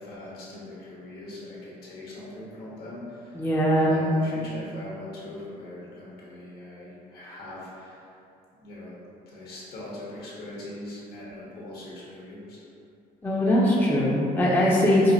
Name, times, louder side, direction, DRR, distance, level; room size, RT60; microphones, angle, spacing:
voice 1, 0.0-3.4 3.8-8.2 8.6-9.0 9.3-12.6, left 1 dB, 65° left, -6 dB, 1.1 m, -41 dB
voice 2, 3.3-4.0 13.2-15.1, equal, 10° left, -6 dB, 0.6 m, -21 dB
4.9 x 2.1 x 2.6 m, 2.6 s
cardioid pair, 110°, 17 cm